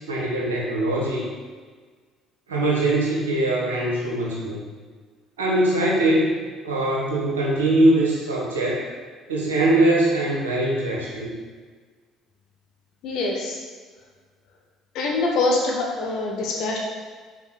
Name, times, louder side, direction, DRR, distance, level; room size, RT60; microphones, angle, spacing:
voice 1, 0.1-1.3 2.5-4.6 5.4-6.3 6.6-8.9 9.3-11.3, right 1 dB, 85° right, -4 dB, 1.8 m, -22 dB
voice 2, 13.0-13.6 14.9-16.8, left 2 dB, 65° left, -2 dB, 1.3 m, -24 dB
5.9 x 4.5 x 6.4 m, 1.5 s
hypercardioid pair, 55°, 0 cm